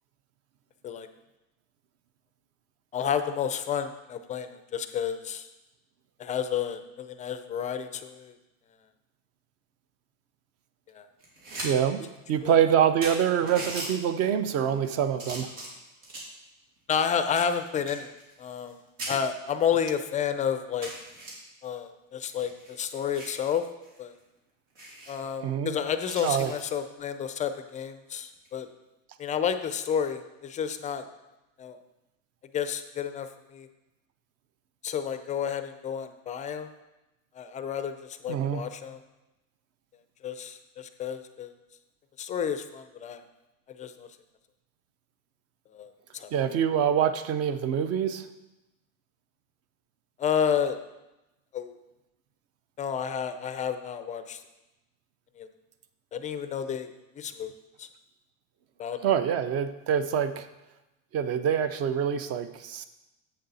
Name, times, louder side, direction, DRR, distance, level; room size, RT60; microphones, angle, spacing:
voice 1, 2.9-5.5 6.2-8.3 10.9-11.0 12.4-12.5 16.9-18.1 18.4-18.8 19.1-20.9 21.6-23.6 24.0-24.1 25.1-28.7 29.2-31.0 31.6-31.8 32.5-33.7 34.8-36.7 37.4-39.0 40.2-41.5 42.2-43.2 43.8-44.1 45.7-46.3 50.2-50.8 51.5-51.7 52.8-54.4 55.4-55.5 56.1-56.9 57.2-57.5 57.8-57.9 58.8-59.0, left 8 dB, 20° left, 10 dB, 0.4 m, -30 dB
sound 1, 11.2-11.7 12.1-12.2 12.7-12.8 13.0-13.9 14.6-14.9 15.2-16.4 16.9-18.7 19.0-19.2 19.8-19.9 20.2-20.3 20.8-21.3 22.2-23.4 23.8-24.0 24.3-24.4 24.7-25.1 26.0-26.6 28.3-28.6, right 1 dB, 90° right, 3.0 m, -39 dB
voice 2, 11.6-15.5 25.4-25.8 26.2-26.5 38.3-38.7 46.3-48.3 59.0-60.5 61.1-62.9, right 8 dB, 40° right, 12 dB, 0.6 m, -25 dB
7.8 x 6.6 x 4.1 m, 0.98 s
supercardioid pair, 125°, 39 cm